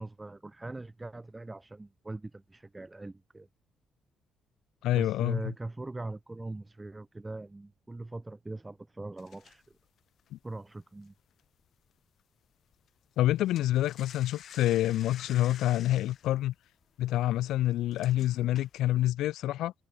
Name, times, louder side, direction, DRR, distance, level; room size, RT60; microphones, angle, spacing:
voice 1, 0.0-3.5 4.9-9.8 10.4-11.1, right 2 dB, 15° right, 1.7 m, -41 dB
voice 2, 4.8-5.4 10.3-10.4 13.2-16.5 17.0-19.7, left 14 dB, 85° left, 0.3 m, -27 dB
sound 1, 9.2-11.9 12.2-12.5 12.7-19.1, left 9 dB, 65° left, 3.9 m, -51 dB
cardioid pair, 90°, 0 cm